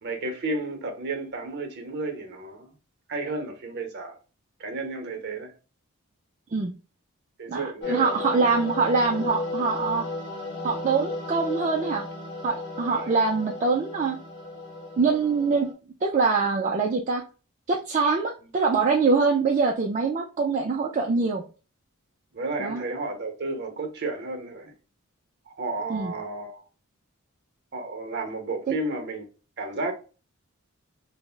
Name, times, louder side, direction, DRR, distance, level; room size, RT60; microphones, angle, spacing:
voice 1, 0.0-2.7 3.1-4.2 4.6-5.5 7.4-8.1 12.9-13.1 22.3-24.7 25.5-26.6 27.7-29.3 29.6-29.9, right 2 dB, 50° right, 0.7 m, -32 dB
voice 2, 7.5-10.0 10.6-12.0 12.4-14.2 15.0-15.7 16.0-17.2 17.7-21.4 22.6-22.8 25.9-26.1, right 4 dB, 35° right, 0.4 m, -24 dB
sound 1, 7.8-15.7, left 2 dB, 55° left, 0.8 m, -34 dB
3.3 x 2.0 x 2.4 m
head